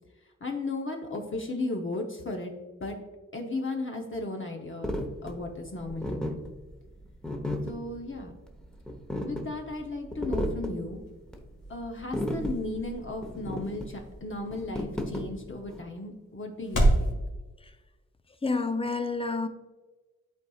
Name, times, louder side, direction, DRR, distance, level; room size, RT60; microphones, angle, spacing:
voice 1, 0.4-2.5 2.8-3.0 3.3-4.9 5.2-6.4 7.6-8.3 9.2-11.0 11.7-17.2, left 2 dB, 40° left, 0.8 m, -35 dB
sound 1, 4.8-15.8, equal, 5° left, 0.9 m, -34 dB
sound 2, 10.8-17.1, right 1 dB, 85° left, 1.7 m, -32 dB
voice 2, 18.4-19.5, left 3 dB, 20° left, 0.5 m, -28 dB
11.0 x 4.2 x 2.4 m
wide cardioid pair, 85°, 30 cm